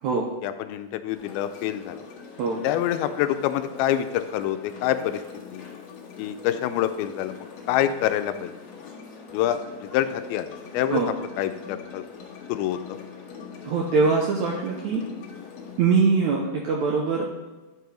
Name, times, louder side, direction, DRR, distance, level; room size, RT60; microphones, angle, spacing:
voice 1, 0.4-2.1 2.6-5.2 5.5-5.6 6.2-7.4 7.7-8.5 9.3-11.0 11.4-12.0 12.5-13.0, left 11 dB, 90° left, 10 dB, 2.5 m, -26 dB
sound 1, 1.1-15.8, left 6 dB, 60° left, 1.9 m, -43 dB
voice 2, 13.6-15.1 15.8-17.3, right 4 dB, 80° right, -1 dB, 1.7 m, -23 dB
10.5 x 4.7 x 5.1 m, 1.2 s
omnidirectional pair, 4.3 m